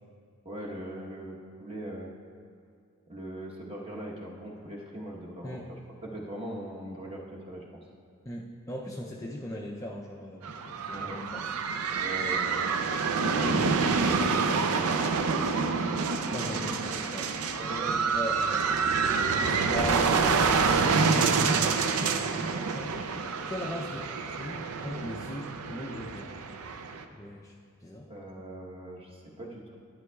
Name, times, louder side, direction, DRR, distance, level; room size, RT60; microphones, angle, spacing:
voice 1, 0.4-2.1 3.1-7.6 10.9-11.2 12.0-15.0 15.3-16.2 16.5-18.1 28.1-29.8, right 1 dB, 25° right, -3 dB, 1.0 m, -41 dB
voice 2, 8.3-11.5 16.3-17.3 18.1-18.6 19.7-20.9 21.2-26.4 27.1-27.5 27.8-28.1, left 1 dB, 15° left, -2 dB, 0.4 m, -39 dB
sound 1, 10.4-27.0, right 5 dB, 85° right, 0.5 m, -27 dB
11.0 x 10.0 x 2.3 m, 2.2 s
head